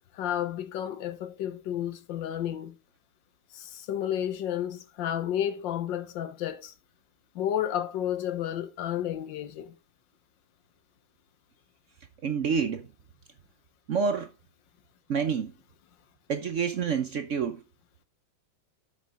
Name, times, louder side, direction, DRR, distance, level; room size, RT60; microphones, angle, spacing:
voice 1, 0.1-2.7 3.5-6.7 7.3-9.7, left 10 dB, 70° left, 1.6 m, -31 dB
voice 2, 12.2-12.9 13.9-14.3 15.1-15.5 16.3-17.6, right 6 dB, 60° right, 0.8 m, -28 dB
8.5 x 7.4 x 3.5 m
omnidirectional pair, 2.1 m